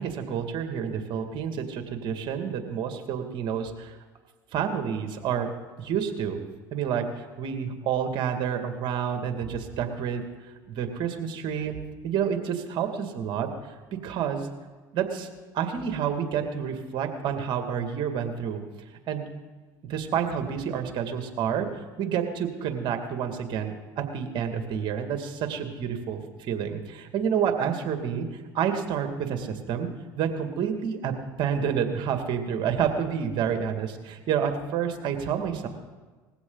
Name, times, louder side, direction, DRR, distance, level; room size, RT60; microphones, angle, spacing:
voice 1, 0.0-4.0 4.5-5.5 5.8-6.4 6.7-10.2 10.7-11.8 12.0-13.5 13.9-14.5 14.9-18.6 19.1-19.3 19.9-29.9 30.2-35.7, right 7 dB, 60° right, 6 dB, 2.2 m, -29 dB
20.0 x 16.0 x 4.0 m, 1.3 s
hypercardioid pair, 80°, 9 cm